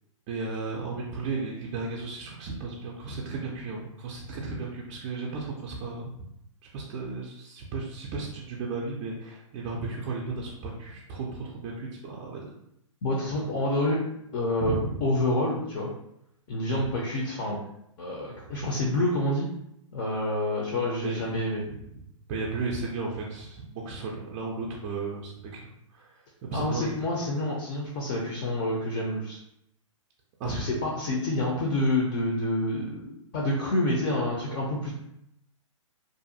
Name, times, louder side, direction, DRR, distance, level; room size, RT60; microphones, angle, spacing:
voice 1, 0.3-6.1 6.7-12.5 14.6-15.0 16.7-16.8 21.0-22.0 22.3-25.3 25.6-27.2 30.4-30.7, right 3 dB, 30° right, -3 dB, 0.4 m, -34 dB
voice 2, 13.0-14.0 14.3-14.7 15.0-15.9 16.5-17.6 18.0-19.5 19.9-21.6 26.5-29.4 30.4-34.9, left 1 dB, 40° left, -2 dB, 0.5 m, -28 dB
2.5 x 2.2 x 2.6 m, 0.78 s
hypercardioid pair, 130°, 17 cm